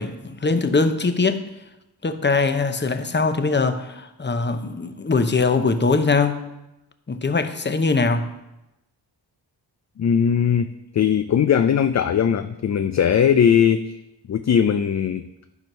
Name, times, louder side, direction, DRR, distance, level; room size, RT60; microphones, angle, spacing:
voice 1, 0.0-1.5 2.0-6.4 7.1-8.3, left 4 dB, 25° left, 9 dB, 0.9 m, -22 dB
voice 2, 10.0-14.0 14.3-15.5, left 8 dB, 40° left, 9 dB, 0.5 m, -19 dB
11.0 x 4.5 x 5.4 m, 0.94 s
cardioid pair, 55°, 44 cm